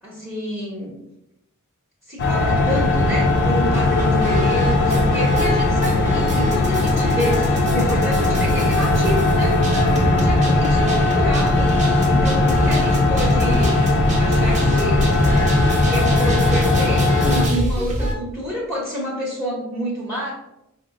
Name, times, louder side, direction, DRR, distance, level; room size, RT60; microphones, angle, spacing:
voice 1, 0.0-0.9 2.1-9.6 10.0-11.7 12.1-13.8 14.2-15.2 15.8-20.3, equal, ahead, -6 dB, 0.9 m, -28 dB
sound 1, 2.2-17.5, left 2 dB, 50° left, 0.5 m, -18 dB
sound 2, 3.7-18.1, equal, 35° right, 0.7 m, -26 dB
5.1 x 2.1 x 3.5 m, 0.85 s
head